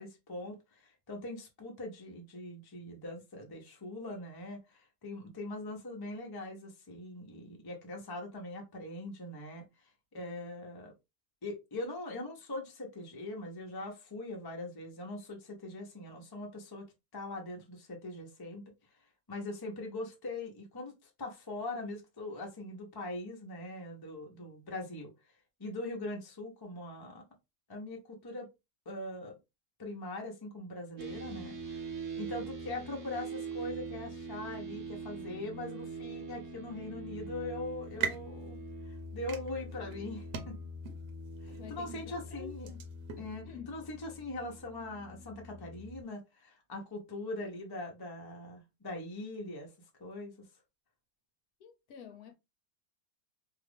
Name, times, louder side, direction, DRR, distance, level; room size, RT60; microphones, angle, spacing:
voice 1, 0.0-10.9 11.4-16.9 17.1-18.6 18.9-19.0 19.3-25.3 25.6-27.2 27.7-28.5 28.9-29.4 29.8-31.9 32.2-38.6 38.8-40.6 41.4-42.7 43.2-49.7 50.0-50.5, left 2 dB, 25° left, 0.5 m, -42 dB
sound 1, 31.0-46.0, right 3 dB, 55° right, 1.0 m, -43 dB
sound 2, 37.7-43.3, right 8 dB, 80° right, 1.2 m, -42 dB
voice 2, 41.4-42.9 43.2-43.8 51.6-52.3, left 7 dB, 70° left, 1.0 m, -50 dB
2.8 x 2.5 x 3.4 m
omnidirectional pair, 1.8 m